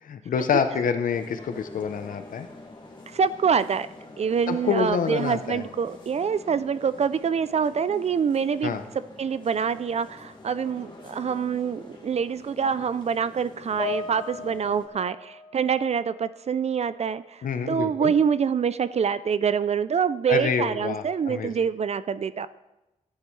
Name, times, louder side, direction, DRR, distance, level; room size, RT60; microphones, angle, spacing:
voice 1, 0.0-2.5 4.5-5.6 8.6-8.8 17.4-18.1 20.3-21.5, left 6 dB, 90° left, 8 dB, 0.7 m, -27 dB
sound 1, 1.1-14.9, left 2 dB, 35° left, 1.8 m, -46 dB
voice 2, 3.1-3.9 4.2-8.8 9.2-22.5, right 7 dB, 55° right, 15 dB, 0.4 m, -25 dB
Piano, 13.8-16.4 16.7-17.0 17.8-17.9, left 4 dB, 50° left, 1.6 m, -37 dB
13.5 x 9.5 x 3.2 m, 0.98 s
wide cardioid pair, 90°, 14 cm